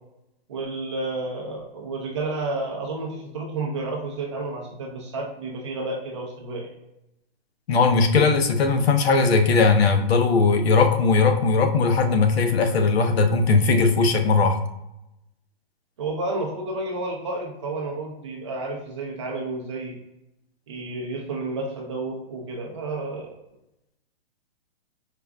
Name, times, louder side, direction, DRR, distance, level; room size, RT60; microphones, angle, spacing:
voice 1, 0.5-6.7 16.0-20.0 20.7-23.3, right 2 dB, 30° right, -1 dB, 0.6 m, -31 dB
voice 2, 7.7-14.6, left 4 dB, 85° left, 5 dB, 0.7 m, -19 dB
4.9 x 2.4 x 2.2 m, 0.88 s
hypercardioid pair, 170°, 30 cm